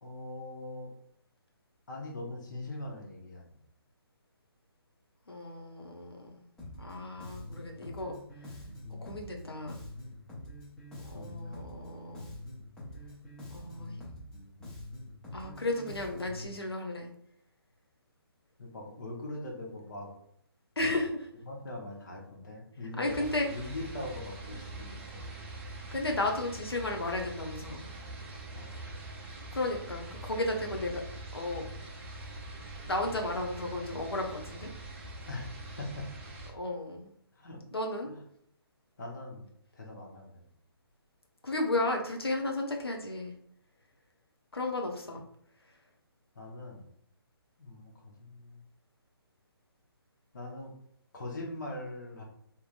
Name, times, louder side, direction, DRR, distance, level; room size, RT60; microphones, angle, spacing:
voice 1, 0.0-0.9 1.9-3.6 11.1-11.6 18.6-20.1 21.5-25.3 28.5-28.8 35.3-36.1 37.3-37.6 38.1-38.2 39.0-39.5 39.7-40.5 46.3-46.8 47.6-48.6 50.3-50.7 51.1-52.2, left 2 dB, 50° left, -1 dB, 1.0 m, -42 dB
voice 2, 5.3-6.4 6.8-8.1 8.9-9.8 11.0-12.3 13.5-14.0 15.3-17.1 20.8-21.3 23.0-23.5 24.5-24.6 25.0-25.1 25.9-27.8 29.5-31.0 31.3-31.7 32.8-34.7 36.5-37.1 37.7-38.1 41.4-43.3 44.5-45.2, left 2 dB, 75° left, 2 dB, 0.8 m, -34 dB
Bass guitar, 6.6-16.5, left 1 dB, 5° left, 0.7 m, -45 dB
sound 1, 23.0-36.5, right 2 dB, 30° right, 0.6 m, -44 dB
3.6 x 2.9 x 2.5 m, 0.68 s
figure-of-eight pair, 140°, 13 cm